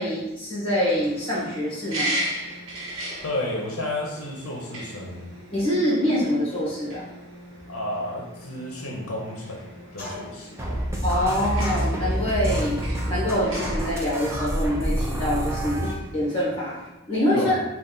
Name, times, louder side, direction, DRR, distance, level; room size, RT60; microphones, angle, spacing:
voice 1, 0.0-2.2 5.5-7.0 11.0-16.8 17.1-17.6, equal, 25° left, -7 dB, 1.2 m, -25 dB
sound 1, 0.9-16.9, right 1 dB, 70° right, 1.1 m, -38 dB
voice 2, 3.2-5.4 7.7-10.8 17.3-17.6, left 1 dB, 70° left, -2 dB, 0.7 m, -32 dB
sound 2, 10.0-10.5 11.6-12.3 13.5-13.9, left 1 dB, 45° left, 0.9 m, -37 dB
sound 3, 10.6-15.9, equal, 10° right, 0.4 m, -27 dB
3.9 x 2.3 x 3.8 m, 0.99 s
head